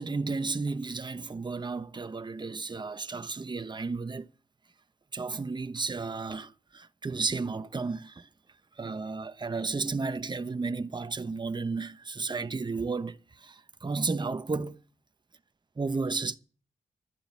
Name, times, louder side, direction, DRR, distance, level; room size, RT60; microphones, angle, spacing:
voice 1, 0.0-4.3 5.1-8.3 8.8-14.8 15.8-16.4, right 4 dB, 30° right, 1.0 m, -33 dB
12.5 x 10.5 x 8.4 m
cardioid pair, 70°, 15 cm